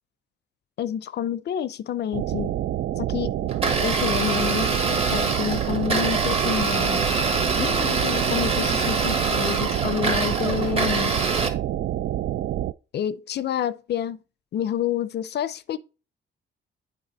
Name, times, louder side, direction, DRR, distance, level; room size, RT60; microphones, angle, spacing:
voice 1, 0.8-2.5 3.0-3.3 3.6-7.0 7.6-11.1 12.9-14.2 14.5-15.8, left 10 dB, 55° left, 0.6 m, -29 dB
sound 1, 2.1-12.7, right 12 dB, 60° right, 0.4 m, -27 dB
Domestic sounds home sounds, 3.5-11.5, right 3 dB, 30° right, 1.5 m, -25 dB
8.2 x 3.7 x 5.2 m
cardioid pair, 90°, 20 cm